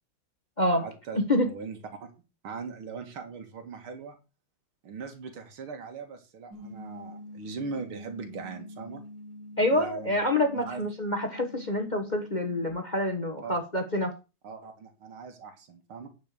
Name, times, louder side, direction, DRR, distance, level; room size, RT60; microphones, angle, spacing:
voice 1, 0.8-2.1 2.4-4.2 4.8-9.0 9.7-10.2 10.5-10.8 13.4-13.6 14.4-16.1, right 5 dB, 85° right, 2.7 m, -40 dB
sound 1, 6.5-12.7, left 1 dB, 60° right, 2.2 m, -45 dB
voice 2, 9.6-14.1, left 1 dB, 25° left, 1.2 m, -27 dB
10.5 x 5.9 x 6.8 m
omnidirectional pair, 2.3 m